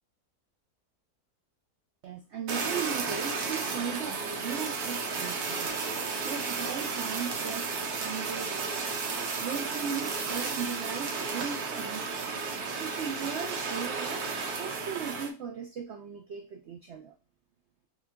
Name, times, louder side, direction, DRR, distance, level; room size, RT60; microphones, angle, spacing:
voice 1, 2.0-5.8 6.2-8.9 9.4-12.3 12.8-14.2 14.5-17.1, right 7 dB, 90° right, 4 dB, 0.6 m, -38 dB
Fire, 2.5-15.3, right 4 dB, 70° right, 1.3 m, -33 dB
6.4 x 2.3 x 2.3 m, 0.31 s
omnidirectional pair, 1.8 m